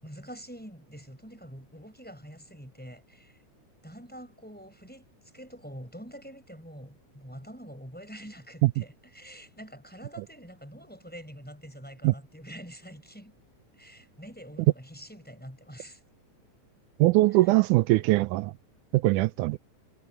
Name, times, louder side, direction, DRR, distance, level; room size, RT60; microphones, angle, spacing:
voice 1, 0.0-3.4 3.8-13.3 13.7-16.0, equal, 5° left, 4.8 m, -46 dB
voice 2, 17.0-18.5 18.9-19.6, right 19 dB, 85° right, 2.0 m, -21 dB
omnidirectional pair, 3.6 m